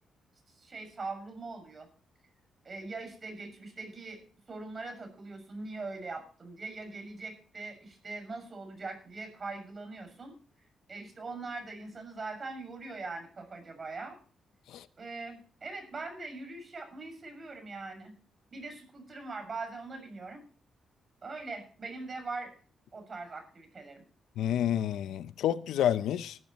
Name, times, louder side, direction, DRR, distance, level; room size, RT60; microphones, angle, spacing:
voice 1, 0.6-1.9 2.6-4.2 4.5-10.3 10.9-14.2 15.0-18.1 18.5-20.4 21.2-22.5 22.9-24.0, right 3 dB, 40° right, 6.6 m, -41 dB
voice 2, 24.4-26.4, left 10 dB, 85° left, 0.6 m, -29 dB
19.0 x 12.5 x 3.1 m
cardioid pair, 80°, 0 cm